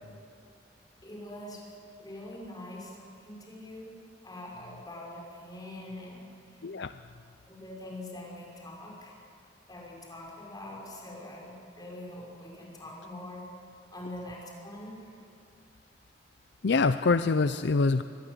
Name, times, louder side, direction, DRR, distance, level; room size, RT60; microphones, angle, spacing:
voice 1, 1.0-1.7 2.0-4.0 4.2-6.6 7.4-9.1 9.7-15.1, left 1 dB, 20° left, -2 dB, 6.0 m, -44 dB
voice 2, 16.6-18.0, left 4 dB, 65° left, 11 dB, 0.6 m, -25 dB
24.5 x 20.0 x 8.1 m, 2.3 s
head